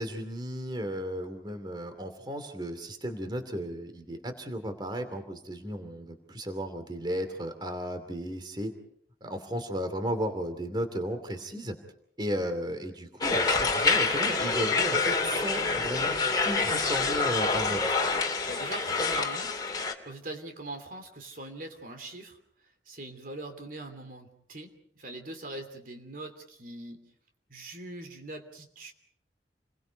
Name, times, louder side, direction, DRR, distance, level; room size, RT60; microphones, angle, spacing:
voice 1, 0.0-8.7 9.2-11.7 12.2-18.0, equal, 25° right, 8 dB, 2.7 m, -34 dB
sound 1, 13.2-19.9, left 4 dB, 20° left, 2.5 m, -27 dB
voice 2, 18.4-22.4 22.9-27.0 27.5-28.9, right 2 dB, 50° right, 6 dB, 2.9 m, -42 dB
29.5 x 22.0 x 5.3 m, 0.67 s
head